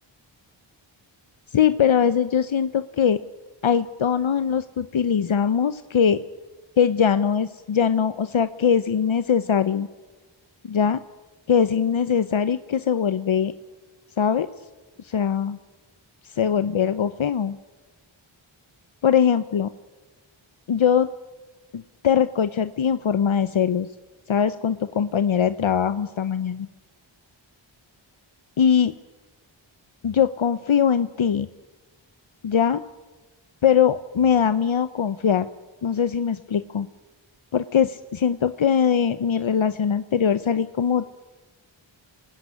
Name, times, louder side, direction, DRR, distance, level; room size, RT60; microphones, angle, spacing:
voice 1, 1.5-3.2 3.6-6.2 6.8-9.9 10.6-11.0 11.5-13.5 14.2-14.5 15.0-15.6 16.2-17.6 19.0-19.7 20.7-21.1 21.7-23.9 24.3-26.7 28.6-28.9 30.0-31.5 32.4-32.8 33.6-35.5 35.8-36.9 37.5-41.0, left 7 dB, 70° left, 12 dB, 0.8 m, -21 dB
26.0 x 19.0 x 9.7 m, 1.3 s
wide cardioid pair, 65°, 49 cm